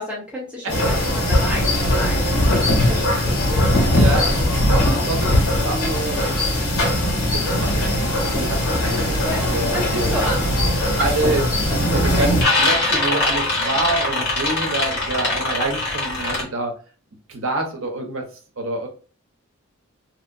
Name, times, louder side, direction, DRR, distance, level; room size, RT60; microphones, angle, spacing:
voice 1, 0.0-3.8 4.8-5.0 9.2-9.4 9.7-10.4, left 1 dB, 5° right, -5 dB, 1.1 m, -30 dB
sound 1, 0.7-12.4, left 1 dB, 80° left, 1.5 m, -20 dB
voice 2, 3.9-6.3 7.3-8.1 8.4-9.2 9.4-10.3 10.9-16.7 17.3-18.3 18.6-18.9, right 2 dB, 70° right, 2 dB, 0.9 m, -27 dB
sound 2, 10.9-11.0 11.4-11.9 12.1-16.4, left 2 dB, 50° left, 1.2 m, -22 dB
2.9 x 2.8 x 2.6 m, 0.37 s
head